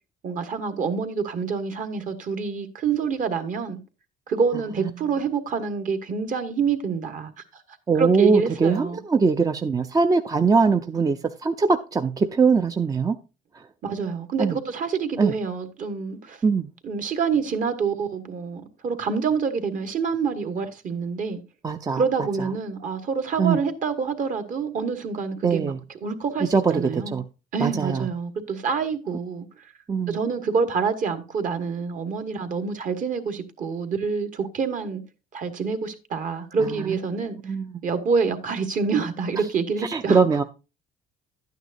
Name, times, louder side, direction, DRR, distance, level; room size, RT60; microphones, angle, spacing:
voice 1, 0.2-3.8 4.3-7.6 8.0-9.0 13.8-16.4 16.8-21.4 21.9-25.7 26.0-27.2 27.5-29.7 30.1-35.0 35.3-37.5 37.8-40.2, right 5 dB, 50° right, 1.4 m, -27 dB
voice 2, 7.9-13.2 13.5-13.6 14.4-14.6 15.2-15.3 16.4-16.7 21.6-22.0 23.4-23.6 25.4-25.8 26.4-27.2 27.6-28.1 29.9-30.2 36.6-37.0 37.4-37.7 39.8-40.4, right 4 dB, 20° right, 0.5 m, -22 dB
11.5 x 9.3 x 2.6 m
cardioid pair, 110°, 17 cm